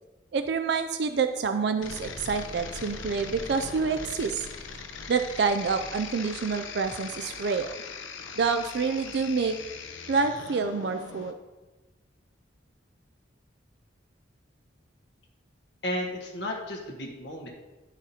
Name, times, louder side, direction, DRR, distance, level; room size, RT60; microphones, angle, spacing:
voice 1, 0.3-4.5 5.1-7.7 8.4-9.6 10.1-11.3, right 5 dB, 55° right, 7 dB, 0.4 m, -27 dB
sound 1, 1.8-11.3, left 5 dB, 80° left, 0.8 m, -40 dB
voice 2, 15.8-17.5, left 1 dB, 65° left, 0 dB, 1.5 m, -33 dB
10.5 x 4.9 x 4.3 m, 1.2 s
head